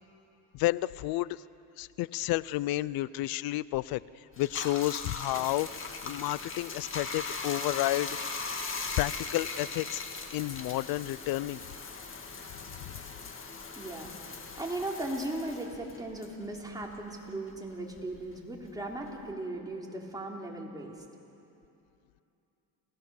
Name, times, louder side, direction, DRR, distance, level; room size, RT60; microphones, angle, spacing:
voice 1, 0.5-1.4 1.8-4.0 4.4-5.7 6.0-8.2 9.0-10.0 10.3-11.6 12.9-13.0, left 17 dB, 85° left, 20 dB, 0.5 m, -31 dB
Bathtub (filling or washing), 4.3-17.2 17.5-19.3, left 4 dB, 35° left, 2.1 m, -39 dB
voice 2, 13.8-20.9, right 1 dB, 10° right, -1 dB, 3.6 m, -37 dB
28.0 x 17.5 x 7.1 m, 2.7 s
cardioid pair, 105°, 35 cm